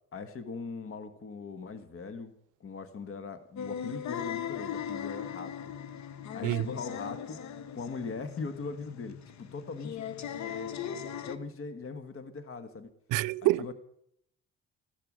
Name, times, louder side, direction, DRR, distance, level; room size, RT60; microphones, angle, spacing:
voice 1, 0.1-2.3 2.6-5.7 6.3-10.1 10.4-10.8 11.2-12.9 13.4-13.7, left 4 dB, 45° left, 1.6 m, -40 dB
sound 1, 3.6-11.4, left 8 dB, 65° left, 1.2 m, -39 dB
voice 2, 13.1-13.7, right 18 dB, 85° right, 0.5 m, -27 dB
15.5 x 12.5 x 6.3 m
cardioid pair, 90°, 30 cm